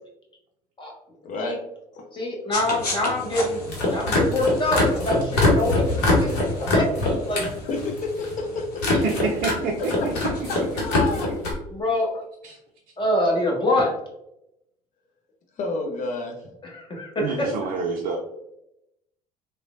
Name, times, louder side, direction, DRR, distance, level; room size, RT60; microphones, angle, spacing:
voice 1, 1.2-1.6 1.9-2.1 7.6-9.1 9.8-9.9 10.2-11.3 15.6-16.4, left 3 dB, 40° left, 2 dB, 0.6 m, -30 dB
voice 2, 2.1-3.6 3.9-6.4 6.7-7.4 11.7-12.1 13.0-13.9 16.7-17.3, left 1 dB, 25° left, -1 dB, 1.0 m, -25 dB
sound 1, 2.5-11.1, left 2 dB, 85° left, 0.7 m, -36 dB
sound 2, 3.6-7.5 7.8-8.3 8.8-9.6 9.8-11.5, left 2 dB, 65° left, 1.0 m, -22 dB
voice 3, 9.0-10.1 10.7-10.8 12.4-12.6 17.2-18.2, right 4 dB, 50° right, 1 dB, 0.4 m, -28 dB
3.0 x 2.2 x 2.4 m, 0.84 s
figure-of-eight pair, 60°, 20 cm